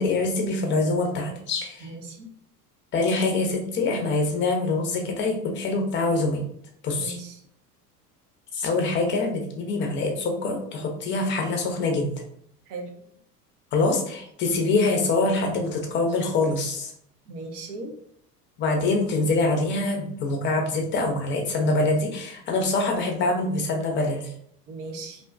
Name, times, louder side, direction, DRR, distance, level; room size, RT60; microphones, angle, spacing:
voice 1, 0.0-1.9 2.9-6.4 6.8-7.2 8.5-12.1 13.7-16.9 18.6-24.3, left 3 dB, 25° left, 2 dB, 0.5 m, -24 dB
voice 2, 1.8-2.3 7.0-7.3 12.7-12.9 17.3-17.9 24.7-25.2, right 3 dB, 70° right, 3 dB, 0.7 m, -37 dB
2.5 x 2.1 x 2.4 m, 0.66 s
figure-of-eight pair, 75°, 48 cm